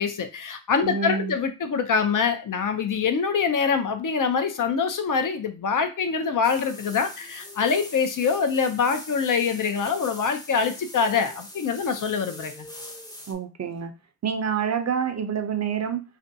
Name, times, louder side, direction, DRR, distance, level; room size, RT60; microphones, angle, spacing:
voice 1, 0.0-12.7, left 5 dB, 65° left, 8 dB, 0.5 m, -24 dB
voice 2, 0.8-1.4 13.3-13.9 14.2-16.0, right 7 dB, 50° right, 7 dB, 0.5 m, -27 dB
sound 1, 6.4-13.3, left 1 dB, 10° left, 0.7 m, -42 dB
2.5 x 2.2 x 2.6 m, 0.29 s
cardioid pair, 45°, 35 cm